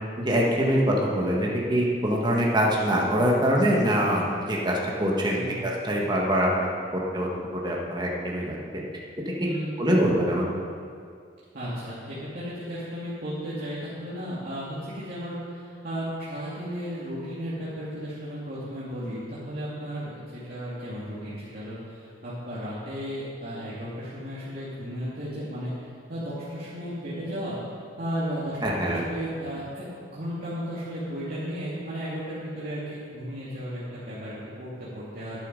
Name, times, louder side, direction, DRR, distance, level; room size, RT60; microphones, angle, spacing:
voice 1, 0.2-6.5 6.9-8.6 9.3-9.4 9.8-10.4 28.6-29.0, equal, 25° right, -3 dB, 1.8 m, -24 dB
voice 2, 5.1-5.6 9.4-9.8 11.5-27.6 28.0-35.4, equal, 55° right, -10 dB, 2.5 m, -34 dB
11.5 x 10.5 x 5.4 m, 2.2 s
head